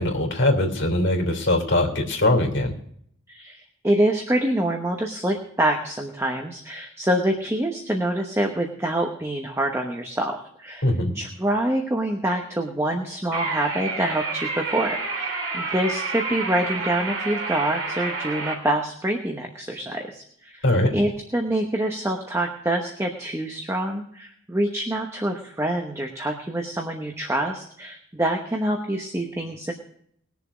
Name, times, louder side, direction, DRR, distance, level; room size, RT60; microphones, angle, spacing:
voice 1, 0.0-2.7 10.8-11.1 20.6-20.9, left 1 dB, 55° left, 2 dB, 3.1 m, -21 dB
voice 2, 3.3-10.9 11.1-20.6 20.9-29.7, right 1 dB, 15° right, 2 dB, 1.0 m, -26 dB
sound 1, 13.3-18.6, right 3 dB, 60° right, 3.2 m, -29 dB
20.0 x 7.0 x 5.0 m, 0.67 s
head